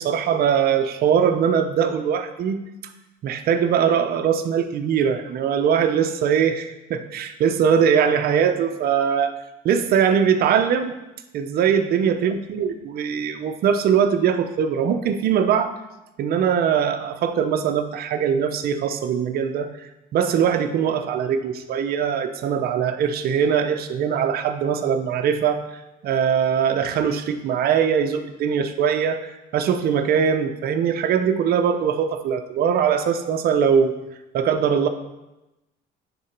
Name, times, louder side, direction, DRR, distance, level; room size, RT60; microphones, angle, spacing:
voice 1, 0.0-2.6 3.2-9.3 9.6-11.0 11.3-15.7 16.2-19.7 20.1-25.6 26.0-34.0 34.3-34.9, right 7 dB, 65° right, 7 dB, 0.8 m, -21 dB
9.7 x 4.0 x 5.9 m, 0.98 s
cardioid pair, 110°, 17 cm